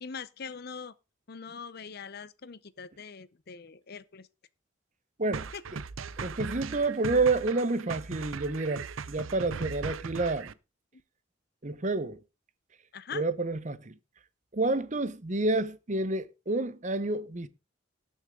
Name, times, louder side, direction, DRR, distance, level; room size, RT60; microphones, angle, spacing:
voice 1, 0.0-0.9 1.3-4.3 5.5-5.6 12.9-13.2, left 6 dB, 50° left, 0.7 m, -42 dB
voice 2, 5.2-5.5 6.2-10.5 11.6-12.2 13.1-13.9 14.5-17.5, right 3 dB, 35° right, 0.9 m, -29 dB
sound 1, 5.3-10.5, right 5 dB, 90° right, 0.6 m, -38 dB
19.0 x 6.5 x 3.7 m
head